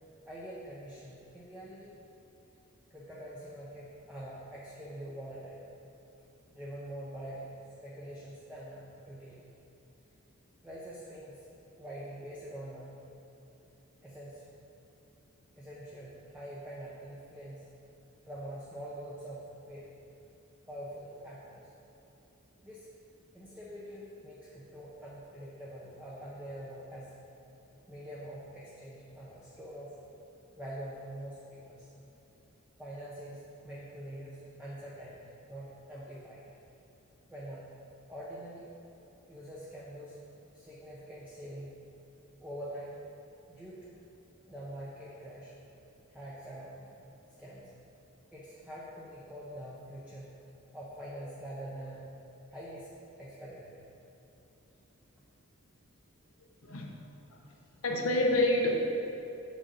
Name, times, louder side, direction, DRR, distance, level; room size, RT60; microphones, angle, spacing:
voice 1, 0.3-2.0 2.9-5.6 6.5-9.4 10.6-11.4 11.8-12.9 14.0-14.4 15.6-17.7 18.2-19.9 20.7-21.7 22.6-22.9 23.3-27.2 27.9-29.9 30.6-31.9 32.8-36.5 37.3-37.7 38.1-38.7 39.3-40.2 40.5-41.7 42.4-42.9 43.5-44.0 44.5-45.5 46.1-47.0 47.4-47.7 48.3-50.3 50.7-52.1 52.5-52.9 53.2-53.8, right 1 dB, 5° right, -7 dB, 0.8 m, -45 dB
voice 2, 56.6-56.9 57.8-58.8, left 1 dB, 70° left, 1 dB, 0.9 m, -27 dB
7.1 x 6.4 x 4.1 m, 2.9 s
head